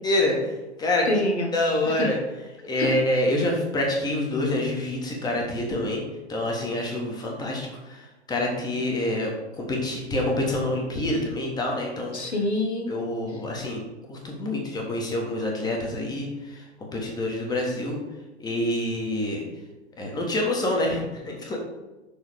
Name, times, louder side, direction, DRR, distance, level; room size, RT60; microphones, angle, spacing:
voice 1, 0.0-0.5 0.8-1.0 1.5-2.2 2.7-6.0 6.3-12.2 12.9-13.8 14.1-18.0 18.4-19.4 20.0-21.6, left 1 dB, 10° left, 0 dB, 1.3 m, -27 dB
voice 2, 1.1-1.5 1.8-2.1 2.8-3.0 12.1-12.9, left 1 dB, 70° left, 3 dB, 1.4 m, -26 dB
6.6 x 3.9 x 5.0 m, 1.1 s
figure-of-eight pair, 105°, 34 cm